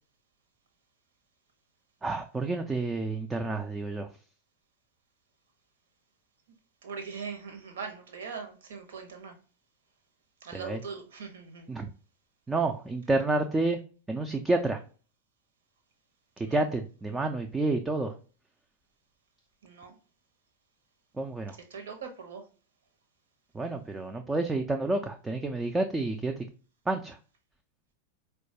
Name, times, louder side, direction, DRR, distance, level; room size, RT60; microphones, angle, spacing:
voice 1, 2.0-4.1 10.5-10.8 11.7-11.9 12.5-13.8 14.1-14.8 16.4-18.1 21.2-21.6 23.5-26.4 26.9-27.2, right 2 dB, 10° right, 4 dB, 0.4 m, -29 dB
voice 2, 6.8-9.4 10.4-11.7 16.4-16.6 19.6-20.0 21.7-22.5, right 5 dB, 60° right, 5 dB, 0.9 m, -41 dB
4.3 x 2.3 x 2.7 m, 0.37 s
figure-of-eight pair, 90°, 0 cm